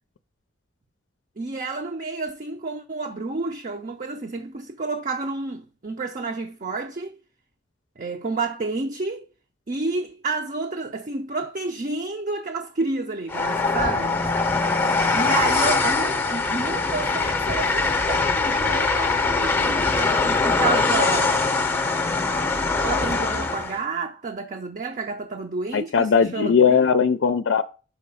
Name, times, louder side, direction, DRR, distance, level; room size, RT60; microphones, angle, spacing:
voice 1, 1.4-7.2 8.0-9.3 9.7-14.2 15.1-21.4 22.8-26.9, right 3 dB, 45° right, 0.6 m, -30 dB
Train, 13.3-23.8, left 3 dB, 10° left, 0.7 m, -22 dB
voice 2, 25.7-27.6, left 6 dB, 75° left, 0.4 m, -19 dB
5.9 x 4.2 x 5.5 m
head